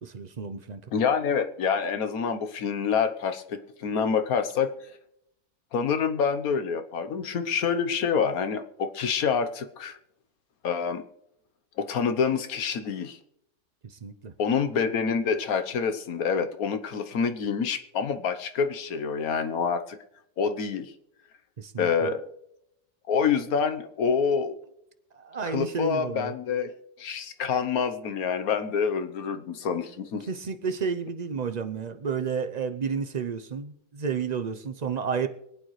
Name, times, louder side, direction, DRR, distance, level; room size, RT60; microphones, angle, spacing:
voice 1, 0.0-0.8 13.8-14.3 21.6-22.1 25.1-26.3 30.3-35.3, right 6 dB, 55° right, 8 dB, 0.4 m, -31 dB
voice 2, 0.9-4.7 5.7-10.0 10.6-11.0 11.8-13.2 14.4-20.0 20.4-20.9 21.8-22.3 23.1-24.6 25.4-26.7 27.0-30.3, left 6 dB, 65° left, 9 dB, 1.4 m, -27 dB
24.5 x 8.9 x 3.2 m, 0.77 s
omnidirectional pair, 1.7 m